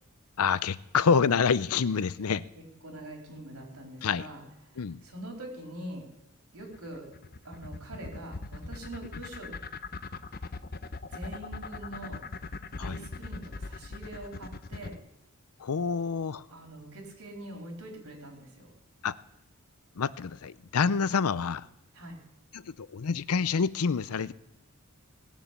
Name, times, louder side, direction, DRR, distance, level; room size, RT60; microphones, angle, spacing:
voice 1, 0.4-2.4 4.0-4.2 4.8-5.0 12.8-13.0 15.6-16.4 19.0-19.2 20.0-21.7 22.5-24.3, left 6 dB, 85° left, 18 dB, 0.5 m, -27 dB
voice 2, 2.5-6.0 6.5-7.1 7.4-9.5 11.1-12.2 12.8-15.0 16.5-18.7 21.9-22.2, right 1 dB, 80° right, 2 dB, 4.0 m, -43 dB
sound 1, 6.7-15.0, left 3 dB, 45° left, 0.7 m, -39 dB
18.5 x 7.2 x 8.2 m, 0.87 s
head